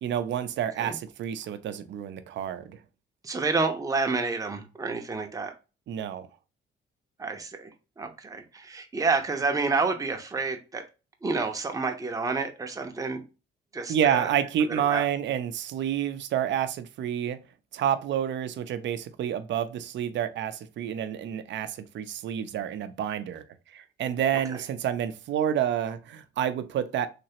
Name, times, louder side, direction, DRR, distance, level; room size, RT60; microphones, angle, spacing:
voice 1, 0.0-2.8 5.9-6.3 13.9-17.4 17.7-23.4 23.7-27.1, right 9 dB, 65° right, 0.5 m, -29 dB
voice 2, 3.2-5.5 7.2-7.7 8.0-10.8 11.2-13.2 13.7-14.3 14.7-15.1 24.5-24.6, right 4 dB, 15° right, 0.7 m, -29 dB
3.3 x 3.0 x 2.8 m
cardioid pair, 90°, 20 cm